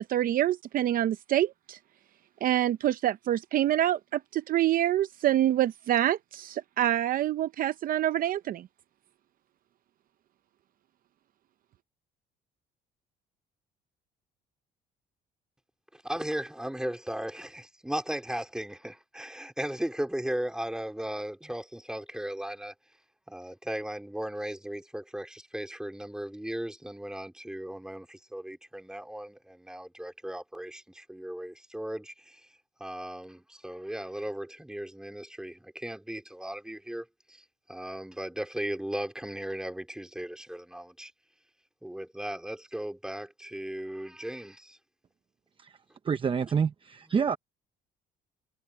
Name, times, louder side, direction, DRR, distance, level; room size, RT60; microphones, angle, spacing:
voice 1, 0.0-1.8 2.4-8.7, right 12 dB, 55° right, 0.7 m, -26 dB
voice 2, 15.9-22.7 23.3-32.5 32.8-41.1 41.8-44.8, right 1 dB, 5° right, 3.7 m, -37 dB
voice 3, 46.0-47.4, right 6 dB, 30° right, 0.9 m, -27 dB
cardioid pair, 110°, 17 cm